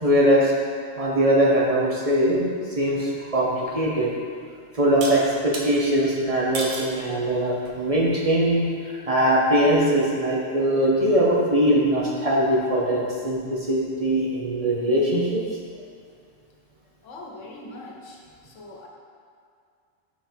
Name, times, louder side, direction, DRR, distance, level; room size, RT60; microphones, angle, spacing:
voice 1, 0.0-0.5 1.0-2.4 2.8-4.1 4.7-15.4, right 1 dB, 35° right, -5 dB, 0.8 m, -21 dB
sound 1, 5.0-5.7 6.5-6.9 7.6-8.0, right 3 dB, 65° right, 1.0 m, -32 dB
voice 2, 17.0-18.2 18.4-18.9, left 2 dB, 85° left, 0 dB, 1.2 m, -41 dB
5.7 x 4.6 x 4.4 m, 2.2 s
omnidirectional pair, 1.2 m